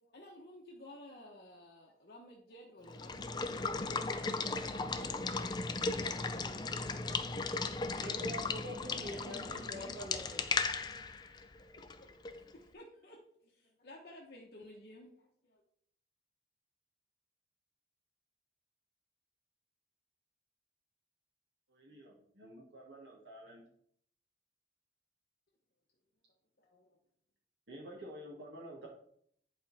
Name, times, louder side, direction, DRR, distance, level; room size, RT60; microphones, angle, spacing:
voice 1, 0.0-5.4 5.8-7.3 8.9-10.0 11.6-13.2 13.4-15.6 26.6-27.0, left 1 dB, 55° left, -2 dB, 1.0 m, -54 dB
Water / Water tap faucet / Liquid, 2.9-12.5, left 4 dB, 25° left, 0.4 m, -36 dB
voice 2, 7.9-10.4, left 1 dB, 60° right, 2 dB, 1.8 m, -44 dB
voice 3, 21.7-23.6 27.7-28.9, equal, 85° right, -5 dB, 2.0 m, -50 dB
10.5 x 4.3 x 4.2 m, 0.67 s
head